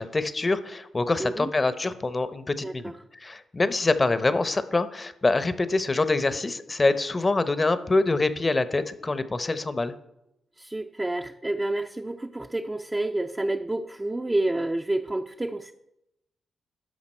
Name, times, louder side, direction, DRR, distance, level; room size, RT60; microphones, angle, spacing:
voice 1, 0.0-9.9, left 3 dB, 35° left, 12 dB, 0.8 m, -25 dB
voice 2, 1.2-1.5 2.6-2.9 10.6-15.7, right 2 dB, 20° right, 3 dB, 0.6 m, -29 dB
11.5 x 5.9 x 4.4 m, 0.87 s
hypercardioid pair, 45°, 0 cm